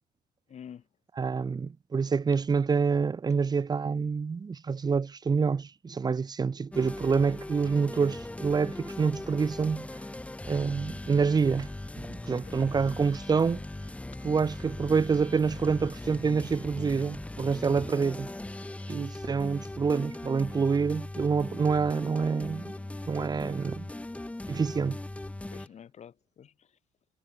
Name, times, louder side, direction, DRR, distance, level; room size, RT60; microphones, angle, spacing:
voice 1, 0.5-0.9 12.4-12.8 13.2-13.4 25.5-26.8, left 8 dB, 40° left, 1.3 m, -49 dB
voice 2, 1.2-9.9 10.5-11.7 12.0-13.6 14.2-18.3 18.9-22.7 23.1-23.9 24.5-25.0, right 5 dB, 25° right, 0.8 m, -27 dB
sound 1, 6.7-25.7, left 2 dB, 5° left, 0.8 m, -39 dB
cardioid pair, 110°, 17 cm